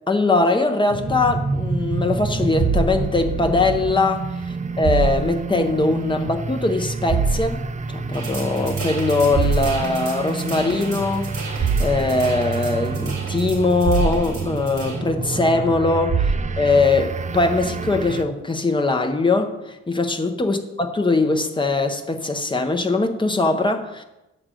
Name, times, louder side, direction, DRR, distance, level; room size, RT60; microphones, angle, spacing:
voice 1, 0.1-24.0, left 3 dB, 15° left, 0.7 m, -21 dB
sound 1, 0.9-18.2, right 5 dB, 25° right, 0.4 m, -26 dB
sound 2, 8.1-15.0, right 3 dB, 65° right, 3.2 m, -36 dB
9.6 x 5.0 x 7.6 m
wide cardioid pair, 175°, 29 cm